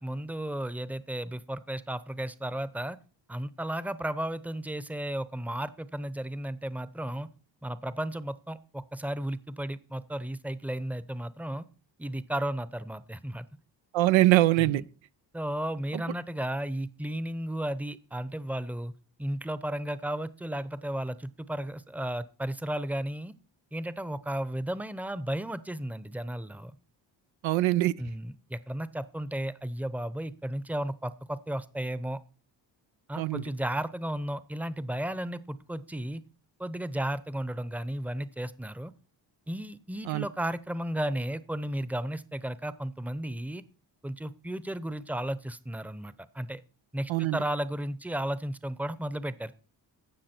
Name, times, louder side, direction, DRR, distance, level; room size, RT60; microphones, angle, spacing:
voice 1, 0.0-3.0 3.3-7.3 7.6-11.6 12.0-13.4 14.6-14.8 15.3-18.9 19.2-23.3 23.7-26.7 28.0-32.2 33.1-36.2 36.6-38.9 39.5-43.6 44.0-46.6 46.9-49.5, right 1 dB, 5° right, 0.7 m, -34 dB
voice 2, 13.9-14.8 27.4-27.9 33.2-33.4 40.1-40.3 47.1-47.4, right 16 dB, 85° right, 0.6 m, -23 dB
16.0 x 6.0 x 4.4 m
cardioid pair, 65°, 45 cm